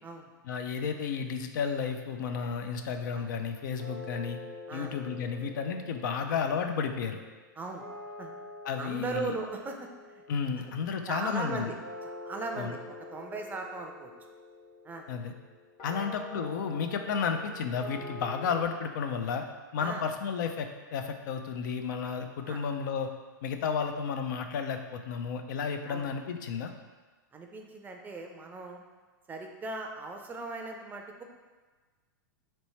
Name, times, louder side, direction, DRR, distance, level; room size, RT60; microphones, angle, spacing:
voice 1, 0.5-4.4 4.7-7.2 8.6-9.3 10.3-11.7 12.6-12.8 15.1-15.3 15.8-19.5 19.7-23.1 23.4-26.7, left 6 dB, 65° left, 6 dB, 0.4 m, -32 dB
sound 1, 1.7-3.0 3.8-18.6, left 2 dB, 45° left, 1.3 m, -47 dB
voice 2, 8.8-10.2 11.1-11.8 12.0-14.1 14.8-15.1 15.9-16.1 19.8-20.1 22.5-22.6 25.9-26.1 27.3-28.8 29.3-31.2, right 3 dB, 15° right, 3 dB, 0.4 m, -38 dB
3.1 x 3.0 x 4.3 m, 1.3 s
hypercardioid pair, 115°, 11 cm